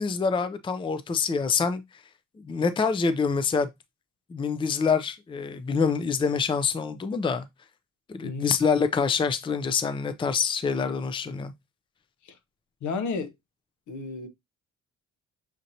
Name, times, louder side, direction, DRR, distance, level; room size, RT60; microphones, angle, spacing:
voice 1, 0.0-1.8 2.4-3.7 4.3-7.5 8.1-11.5, left 5 dB, 15° left, 0.4 m, -26 dB
voice 2, 8.2-8.5 12.2-12.4 12.8-13.3 13.9-14.3, left 4 dB, 75° left, 0.9 m, -32 dB
6.4 x 2.8 x 2.6 m
cardioid pair, 90°, 30 cm